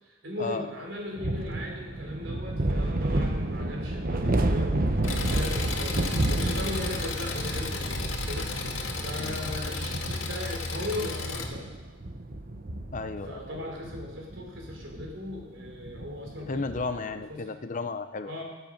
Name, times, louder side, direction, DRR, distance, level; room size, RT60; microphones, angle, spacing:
voice 1, 0.0-11.7 13.2-17.6 18.3-18.4, left 1 dB, 70° right, 0 dB, 4.0 m, -38 dB
sound 1, 1.2-17.0, right 1 dB, 45° right, 1.0 m, -31 dB
Engine, 5.0-11.4, left 3 dB, 80° left, 1.8 m, -34 dB
voice 2, 12.9-13.4 16.5-18.3, left 3 dB, 40° left, 9 dB, 0.6 m, -33 dB
20.0 x 8.2 x 5.3 m, 1.2 s
head